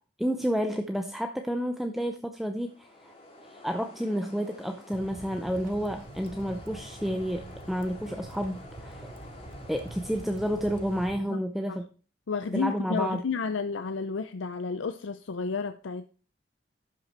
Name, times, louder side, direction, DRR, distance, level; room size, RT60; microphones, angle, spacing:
voice 1, 0.2-3.1 3.5-9.1 9.7-11.9 12.5-13.2, equal, ahead, 0.5 m, -30 dB
sound 1, 2.4-11.1, left 1 dB, 30° left, 2.6 m, -49 dB
sound 2, 4.9-11.2, right 2 dB, 45° right, 0.9 m, -45 dB
voice 2, 12.3-16.1, left 5 dB, 90° left, 0.5 m, -31 dB
11.5 x 5.9 x 4.3 m
head